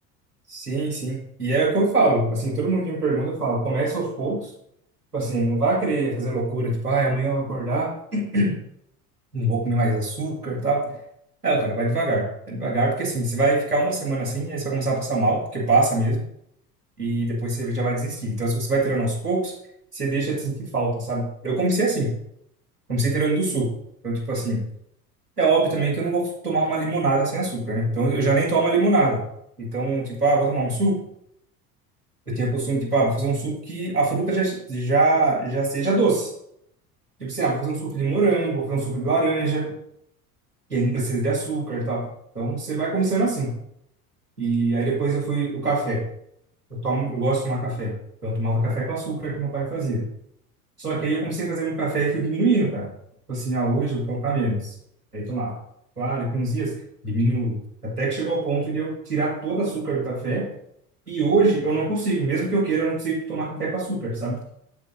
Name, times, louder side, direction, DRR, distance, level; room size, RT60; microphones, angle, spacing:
voice 1, 0.5-4.5 5.1-8.5 9.3-10.9 11.4-16.2 17.0-19.5 19.9-22.1 22.9-23.7 24.0-24.6 25.4-29.2 29.6-30.9 32.3-36.3 37.2-39.7 40.7-42.1 42.3-43.6 44.4-46.0 46.7-48.0 48.2-50.0 50.8-52.9 53.3-54.7 55.1-55.6 56.0-56.7 57.0-57.6 57.8-60.5 61.1-64.4, right 3 dB, 90° right, -4 dB, 2.0 m, -23 dB
8.0 x 7.4 x 2.7 m, 0.72 s
figure-of-eight pair, 70°, 45 cm